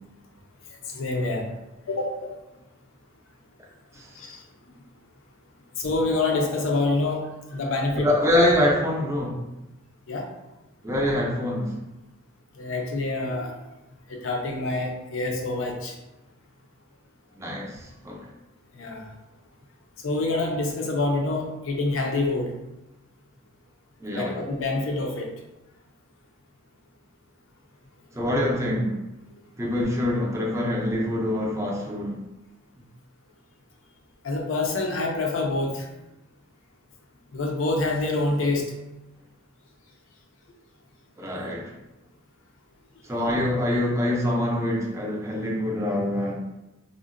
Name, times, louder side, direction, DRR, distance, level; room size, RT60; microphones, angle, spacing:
voice 1, 0.9-1.5 1.9-2.4 4.2-4.4 5.8-7.3 7.5-8.1 10.1-10.3 12.6-13.6 14.1-15.9 18.8-19.0 20.0-22.5 24.1-25.3 34.2-35.9 37.3-38.7, left 2 dB, 70° left, 1 dB, 0.5 m, -26 dB
voice 2, 7.9-9.4 10.8-11.7 17.4-18.2 24.0-24.4 28.1-29.0 29.6-32.2 41.2-41.7 43.0-46.3, left 1 dB, 15° right, -2 dB, 0.5 m, -25 dB
3.6 x 2.1 x 2.4 m, 0.97 s
head